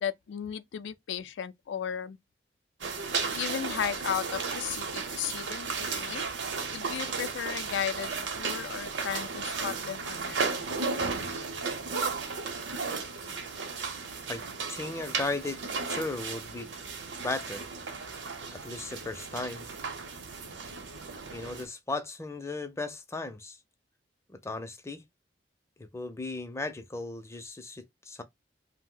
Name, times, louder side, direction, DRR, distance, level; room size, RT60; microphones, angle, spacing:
voice 1, 0.0-2.2 3.4-6.2 6.7-10.7, left 8 dB, 85° left, 0.4 m, -35 dB
sound 1, 2.8-21.7, right 4 dB, 80° right, 0.7 m, -35 dB
voice 2, 14.7-15.6 15.9-16.7 17.2-17.7 18.5-19.6 21.3-23.6 24.3-25.0 25.8-28.2, left 2 dB, 15° left, 0.4 m, -36 dB
2.5 x 2.0 x 3.7 m
head